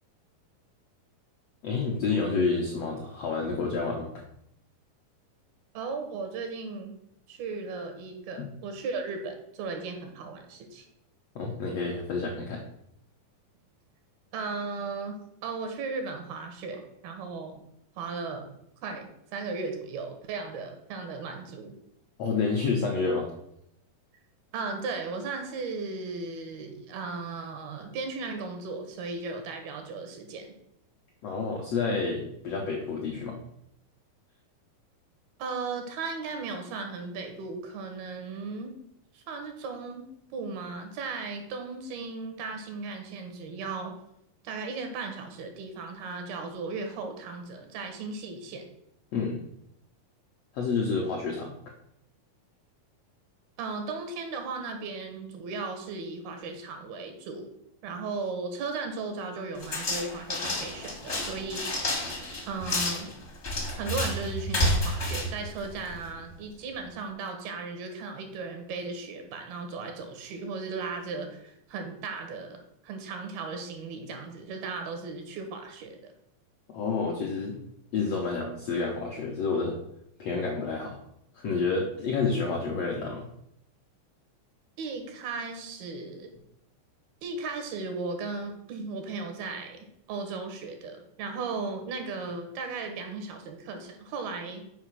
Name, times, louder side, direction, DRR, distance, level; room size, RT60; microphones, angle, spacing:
voice 1, 1.6-4.1 8.4-8.5 11.3-12.6 22.2-23.3 31.2-33.4 49.1-49.4 50.5-51.5 76.7-77.6 77.9-79.8 80.2-81.0 81.3-83.3, left 4 dB, 80° left, 0 dB, 1.4 m, -29 dB
voice 2, 5.7-6.9 7.3-10.8 14.3-17.6 18.0-18.5 18.8-21.7 24.5-30.5 35.4-38.7 39.1-40.1 40.3-43.9 44.4-48.7 53.6-57.5 57.8-61.7 62.5-63.1 63.7-76.1 84.8-86.3 87.2-94.6, right 4 dB, 90° right, 6 dB, 3.2 m, -36 dB
sound 1, 59.6-66.2, left 1 dB, 50° left, 0.8 m, -30 dB
6.9 x 4.9 x 6.1 m, 0.76 s
omnidirectional pair, 4.3 m